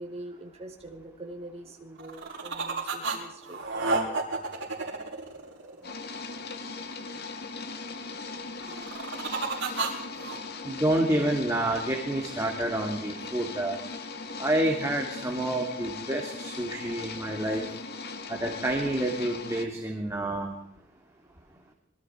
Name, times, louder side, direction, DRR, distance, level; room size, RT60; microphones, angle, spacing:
voice 1, 0.0-3.9, right 1 dB, 30° right, 2 dB, 4.2 m, -43 dB
sound 1, 2.0-3.2 3.4-5.9 8.6-10.4, right 3 dB, 65° right, 6.3 m, -31 dB
sound 2, 5.8-19.6, left 4 dB, 55° left, 2.1 m, -39 dB
voice 2, 10.6-13.8 14.4-17.6 18.3-20.6, right 1 dB, 15° right, 0 dB, 2.9 m, -28 dB
26.5 x 23.0 x 4.7 m, 0.69 s
head